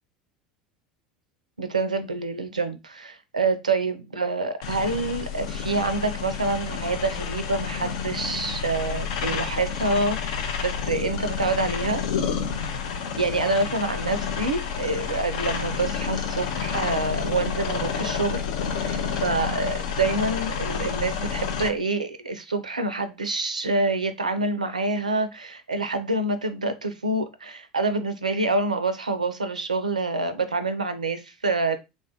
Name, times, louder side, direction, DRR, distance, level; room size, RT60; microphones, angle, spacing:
voice 1, 1.6-12.0 13.2-18.4 18.8-31.8, right 3 dB, 85° right, 0.4 m, -27 dB
sound 1, 4.6-21.7, left 6 dB, 60° left, 0.4 m, -29 dB
3.4 x 2.3 x 2.5 m
figure-of-eight pair, 75°, 4 cm